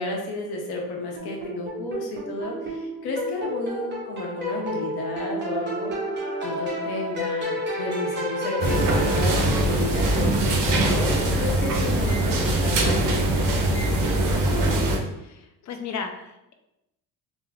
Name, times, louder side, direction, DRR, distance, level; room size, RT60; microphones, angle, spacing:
voice 1, 0.0-5.9 6.4-14.7, left 2 dB, 75° left, 0 dB, 1.0 m, -32 dB
sound 1, 1.2-10.0, equal, 30° right, 1.1 m, -31 dB
sound 2, 8.6-15.0, right 1 dB, 55° right, 0.8 m, -22 dB
voice 2, 15.1-16.5, left 5 dB, 50° left, 5 dB, 0.6 m, -35 dB
3.6 x 2.1 x 3.4 m, 0.90 s
cardioid pair, 95°, 38 cm